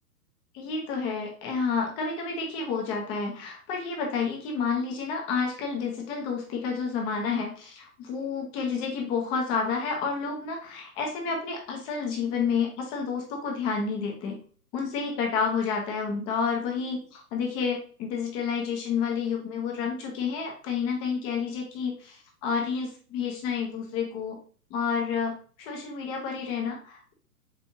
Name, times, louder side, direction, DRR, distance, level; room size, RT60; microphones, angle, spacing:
voice 1, 0.5-14.4 14.7-24.4 24.7-27.1, left 5 dB, 10° left, 1 dB, 0.4 m, -30 dB
4.4 x 3.4 x 2.7 m, 0.41 s
hypercardioid pair, 120°, 46 cm